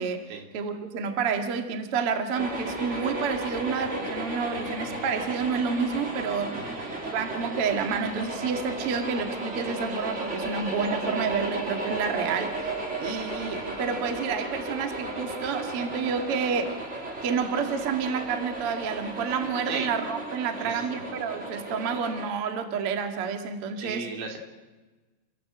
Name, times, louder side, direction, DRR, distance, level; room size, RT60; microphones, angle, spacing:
voice 1, 0.5-6.7 7.1-12.7 13.0-16.8 17.2-24.1, right 6 dB, 55° right, 5 dB, 1.6 m, -29 dB
sound 1, 2.3-22.3, right 2 dB, 30° right, 1.4 m, -34 dB
voice 2, 20.6-21.0 23.8-24.4, right 5 dB, 80° right, 2 dB, 5.6 m, -36 dB
29.0 x 16.5 x 7.8 m, 1.2 s
omnidirectional pair, 5.6 m